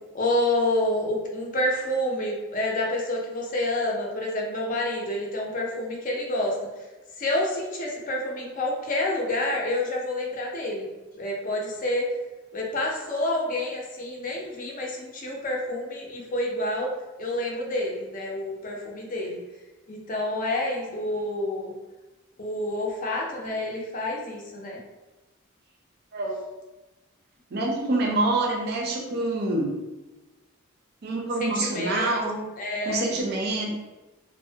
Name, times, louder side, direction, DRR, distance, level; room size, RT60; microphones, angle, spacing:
voice 1, 0.1-6.6 7.2-12.1 12.5-16.9 17.2-19.4 19.9-21.7 22.4-24.8 31.4-33.1, left 1 dB, 40° left, -1 dB, 0.5 m, -28 dB
voice 2, 27.5-29.7 31.0-32.5 32.9-33.7, right 2 dB, 50° right, 0 dB, 0.5 m, -26 dB
2.4 x 2.0 x 2.7 m, 1.1 s
head